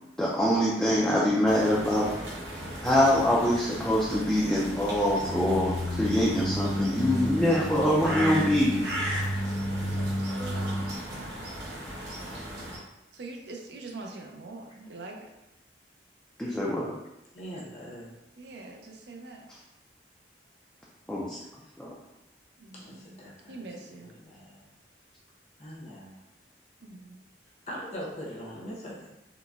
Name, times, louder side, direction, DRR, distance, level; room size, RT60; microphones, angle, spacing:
voice 1, 0.2-2.1 2.8-8.9 16.4-16.9 21.1-21.4 21.8-21.9, left 1 dB, 5° left, -6 dB, 0.3 m, -24 dB
sound 1, 1.5-12.8, right 1 dB, 85° right, 0.8 m, -37 dB
voice 2, 5.1-5.4 8.0-8.2 14.7-14.8 17.3-18.2 22.7-23.6 24.0-24.7 25.6-26.2 27.7-29.1, equal, 40° left, -4 dB, 0.8 m, -42 dB
sound 2, 5.2-11.0, equal, 85° left, 0.4 m, -32 dB
voice 3, 9.8-11.3 13.1-15.3 18.4-19.5 22.6-23.2 23.5-24.1 26.8-27.2, right 3 dB, 70° right, 1 dB, 0.5 m, -44 dB
3.9 x 2.1 x 2.3 m, 0.93 s
head